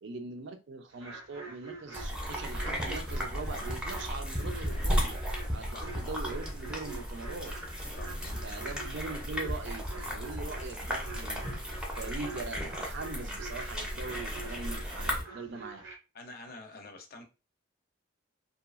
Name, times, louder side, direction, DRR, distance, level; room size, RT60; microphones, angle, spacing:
voice 1, 0.0-5.2 5.5-7.5 8.2-15.8, right 3 dB, 60° right, 0.4 m, -42 dB
sound 1, 0.9-16.0, right 4 dB, 85° right, 1.0 m, -47 dB
sound 2, 1.9-15.2, equal, 5° right, 0.5 m, -35 dB
voice 2, 8.0-8.5 15.1-15.4 16.1-17.2, left 3 dB, 50° left, 0.5 m, -48 dB
2.7 x 2.3 x 2.4 m
head